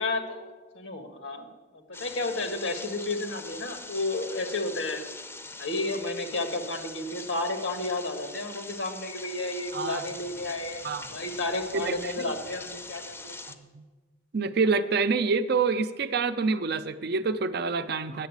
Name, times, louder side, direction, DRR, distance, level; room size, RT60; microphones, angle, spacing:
voice 1, 0.0-5.0 5.6-13.3, left 2 dB, 90° left, 6 dB, 1.5 m, -32 dB
sound 1, 1.9-13.6, left 3 dB, 15° left, 0.6 m, -43 dB
voice 2, 9.7-10.0 10.8-11.1 11.7-12.3 13.7-13.8 14.3-18.3, right 4 dB, 60° right, 11 dB, 0.5 m, -27 dB
9.0 x 7.2 x 8.1 m, 1.3 s
head